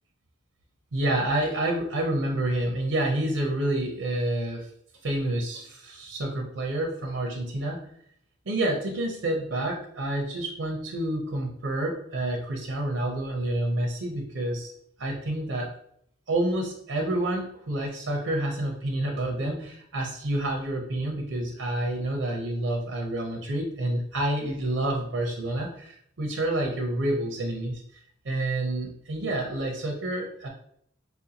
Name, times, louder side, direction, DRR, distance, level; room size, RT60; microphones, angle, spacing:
voice 1, 0.9-4.7 5.0-7.9 8.5-14.7 15.0-15.7 16.3-27.8 28.2-30.5, right 1 dB, 90° right, 1 dB, 0.6 m, -28 dB
4.2 x 2.5 x 2.8 m, 0.68 s
head